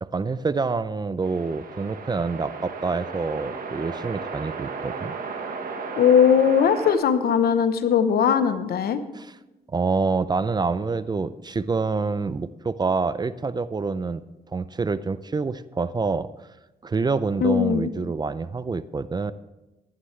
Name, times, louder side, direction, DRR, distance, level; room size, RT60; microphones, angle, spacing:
voice 1, 0.0-5.2 9.1-9.4 9.7-14.2 14.5-16.3 16.8-19.3, right 4 dB, 25° right, 16 dB, 0.5 m, -27 dB
sound 1, 1.2-7.0, right 5 dB, 65° right, 1.5 m, -34 dB
voice 2, 6.0-9.0 17.4-17.9, left 7 dB, 75° left, 11 dB, 0.9 m, -19 dB
16.0 x 11.0 x 3.3 m, 1.0 s
cardioid pair, 80°, 16 cm